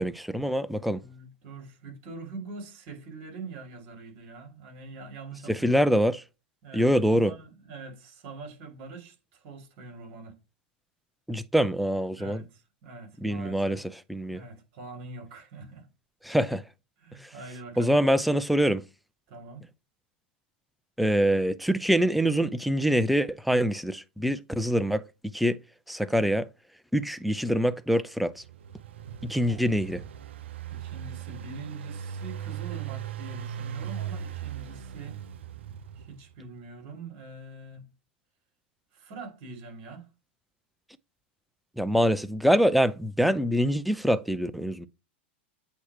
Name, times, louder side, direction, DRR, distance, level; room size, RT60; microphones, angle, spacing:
voice 1, 0.0-1.0 5.5-6.2 6.7-7.3 11.3-12.4 13.2-13.8 14.1-14.4 16.2-16.6 17.8-18.8 21.0-25.0 25.3-25.6 25.9-26.5 26.9-28.4 29.2-30.0 41.8-44.9, equal, ahead, 0.5 m, -24 dB
voice 2, 0.9-5.9 6.6-10.4 12.2-13.8 14.3-15.9 17.0-18.0 19.3-19.6 29.4-29.6 30.7-35.2 35.9-37.8 38.9-40.1, right 3 dB, 50° right, 3.2 m, -44 dB
Engine, 28.3-36.3, right 9 dB, 80° right, 0.6 m, -38 dB
8.4 x 2.9 x 4.8 m
hypercardioid pair, 125°, 6 cm